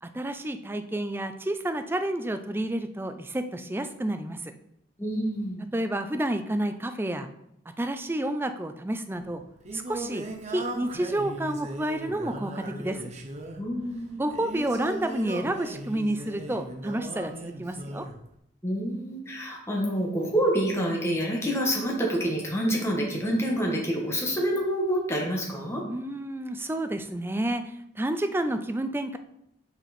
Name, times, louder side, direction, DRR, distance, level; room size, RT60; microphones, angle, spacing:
voice 1, 0.0-4.5 5.7-7.3 7.8-9.4 9.7-13.0 14.2-18.1 25.9-29.2, right 1 dB, 10° right, 8 dB, 0.4 m, -30 dB
voice 2, 5.0-5.7 13.6-14.2 18.6-25.8, equal, 15° left, -1 dB, 1.4 m, -27 dB
Singing, 9.1-18.2, right 1 dB, 35° right, 0.8 m, -38 dB
5.8 x 5.7 x 4.2 m, 0.79 s
head